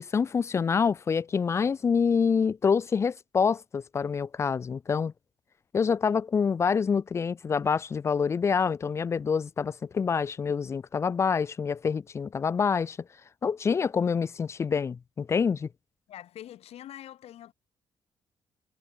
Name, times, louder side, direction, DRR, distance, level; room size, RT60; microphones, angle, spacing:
voice 1, 0.0-5.1 5.7-13.0 13.4-15.7, left 6 dB, 25° left, 0.4 m, -26 dB
voice 2, 16.1-17.5, left 12 dB, 75° left, 5.9 m, -44 dB
cardioid pair, 165°, 11 cm